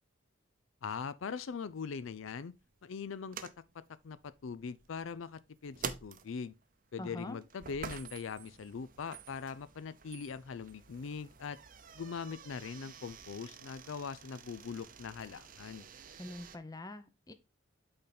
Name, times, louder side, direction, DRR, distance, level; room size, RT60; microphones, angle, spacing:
voice 1, 0.8-2.5 2.8-3.4 4.0-4.2 4.4-5.8 6.0-6.5 6.9-11.6 11.9-15.9, left 5 dB, 70° left, 0.4 m, -41 dB
sound 1, 1.3-16.6, right 6 dB, 40° right, 0.7 m, -49 dB
voice 2, 7.0-7.4 16.2-17.3, left 1 dB, 20° left, 0.6 m, -44 dB
8.6 x 3.9 x 4.2 m
head